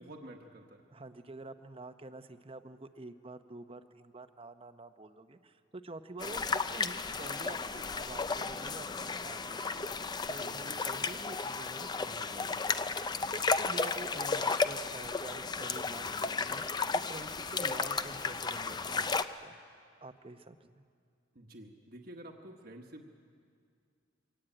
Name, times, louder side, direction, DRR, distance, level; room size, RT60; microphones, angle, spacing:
voice 1, 0.0-0.8 10.3-10.8 21.3-23.1, right 1 dB, 50° right, 2 dB, 1.3 m, -50 dB
voice 2, 0.9-9.9 10.3-12.7 13.1-16.6 16.9-19.6 20.0-20.8, right 2 dB, 30° right, 9 dB, 0.8 m, -48 dB
sound 1, 6.2-19.2, left 4 dB, 20° left, 0.5 m, -34 dB
23.0 x 17.5 x 9.0 m, 2.2 s
head